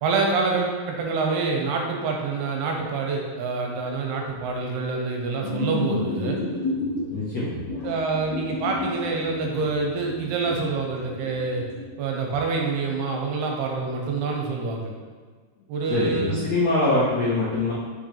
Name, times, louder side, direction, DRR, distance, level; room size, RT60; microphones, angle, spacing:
voice 1, 0.0-6.4 7.8-11.6 12.0-14.9 15.7-16.4, right 4 dB, 80° right, 0 dB, 2.8 m, -26 dB
sound 1, 5.4-7.0 7.6-11.8, left 2 dB, 50° left, 2.1 m, -30 dB
voice 2, 7.1-7.6 15.9-17.7, left 2 dB, 80° left, -7 dB, 1.5 m, -23 dB
6.2 x 6.2 x 3.3 m, 1.5 s
omnidirectional pair, 4.7 m